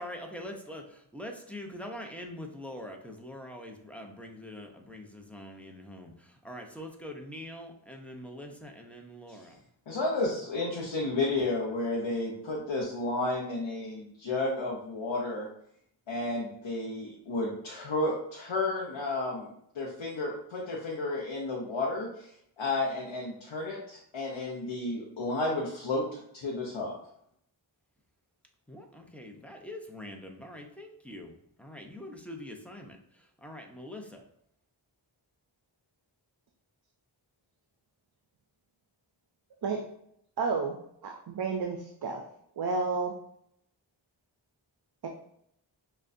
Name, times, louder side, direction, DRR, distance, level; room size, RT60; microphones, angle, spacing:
voice 1, 0.0-0.8 1.1-9.6 28.7-34.2, left 1 dB, 5° left, 2 dB, 0.6 m, -44 dB
voice 2, 9.9-15.5 16.1-19.5 19.7-22.3 22.6-27.0, left 2 dB, 90° left, -3 dB, 0.8 m, -32 dB
voice 3, 40.4-40.8 41.0-42.2 42.6-43.2 45.0-45.1, right 4 dB, 55° right, 3 dB, 0.5 m, -31 dB
6.2 x 2.2 x 2.6 m, 0.72 s
wide cardioid pair, 40°, 46 cm